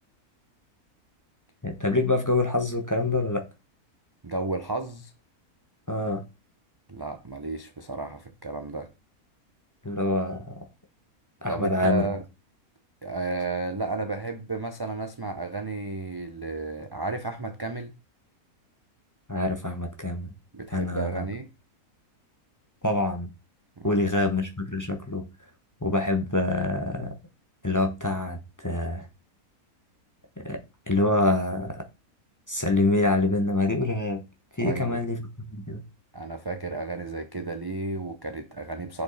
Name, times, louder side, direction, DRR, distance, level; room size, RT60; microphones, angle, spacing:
voice 1, 1.6-3.4 5.9-6.2 9.8-10.7 11.4-12.1 19.3-20.3 20.7-21.3 22.8-23.3 23.8-25.2 25.8-27.2 27.6-29.1 30.4-30.6 30.9-31.8 32.5-34.2 34.6-35.8, left 2 dB, 15° left, 0.9 m, -26 dB
voice 2, 4.2-5.1 6.9-8.9 11.5-12.2 13.0-17.9 20.5-21.5 23.8-24.3 34.6-35.0 36.1-39.0, right 3 dB, 25° right, 0.5 m, -33 dB
7.0 x 5.4 x 4.0 m
omnidirectional pair, 1.6 m